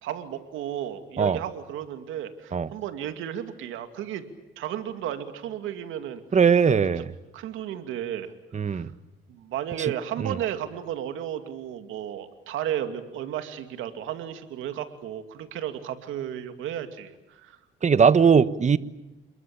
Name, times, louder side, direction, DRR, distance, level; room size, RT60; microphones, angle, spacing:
voice 1, 0.0-4.2 4.6-6.2 7.3-8.3 8.7-8.9 9.3-17.6, right 10 dB, 90° right, 8 dB, 2.6 m, -33 dB
voice 2, 6.3-7.1 8.5-8.9 10.2-10.3 17.8-18.8, right 6 dB, 35° right, 14 dB, 1.3 m, -20 dB
29.0 x 22.0 x 8.9 m, 0.98 s
cardioid pair, 90°, 20 cm